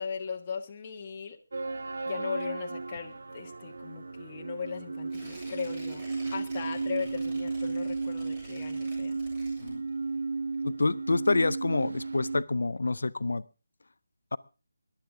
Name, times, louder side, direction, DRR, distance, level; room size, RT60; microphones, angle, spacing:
voice 1, 0.0-1.4 2.1-6.0 6.3-9.2, left 6 dB, 25° left, 2 dB, 1.5 m, -38 dB
sound 1, 1.5-12.4, right 3 dB, 55° right, 1.0 m, -34 dB
Tearing, 5.1-10.2 10.5-10.6, right 1 dB, 25° right, 7.3 m, -50 dB
voice 2, 10.6-13.4, left 3 dB, 60° left, 16 dB, 0.7 m, -27 dB
22.0 x 11.5 x 3.6 m, 0.32 s
figure-of-eight pair, 155°, 0 cm